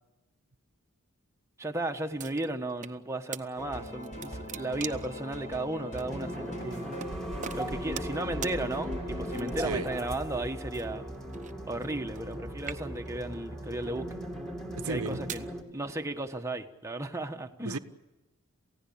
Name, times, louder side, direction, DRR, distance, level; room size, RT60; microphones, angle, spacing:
voice 1, 1.6-6.8 7.5-11.1 11.7-14.1 14.8-15.4 15.7-17.8, right 2 dB, 15° right, 1.3 m, -35 dB
sound 1, 2.2-3.0 3.3-3.4 3.9-5.2 6.0-6.1 7.0-7.1 7.4-8.2 8.4-8.6 9.3-9.7 10.7-12.3 12.6-13.2 13.9-14.1 14.8-15.5, right 8 dB, 35° right, 0.9 m, -41 dB
sound 2, 3.6-10.2, equal, 35° left, 4.4 m, -40 dB
sound 3, 6.0-15.6, equal, ahead, 2.4 m, -38 dB
voice 2, 9.6-9.9 14.7-15.2 17.6-17.8, right 3 dB, 80° right, 1.0 m, -33 dB
28.5 x 16.0 x 8.7 m
head